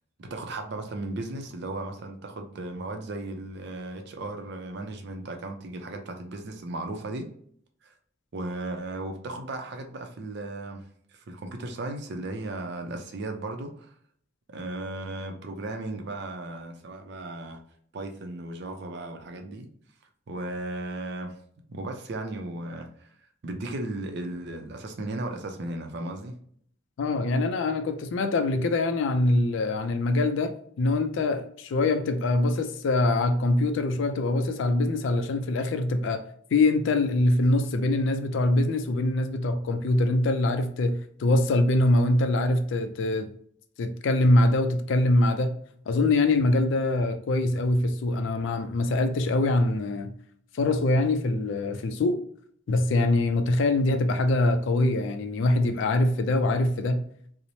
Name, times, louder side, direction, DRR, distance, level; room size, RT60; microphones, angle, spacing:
voice 1, 0.2-7.3 7.8-7.9 8.3-10.8 11.1-13.9 14.5-17.6 17.9-19.7 20.3-21.3 21.7-22.9 23.4-26.4, right 2 dB, 60° right, 0.5 m, -35 dB
voice 2, 27.0-36.2 36.5-43.3 43.8-45.6 45.9-50.1 50.5-52.2 52.7-57.1, left 2 dB, 65° left, 0.3 m, -24 dB
3.0 x 2.0 x 2.6 m
head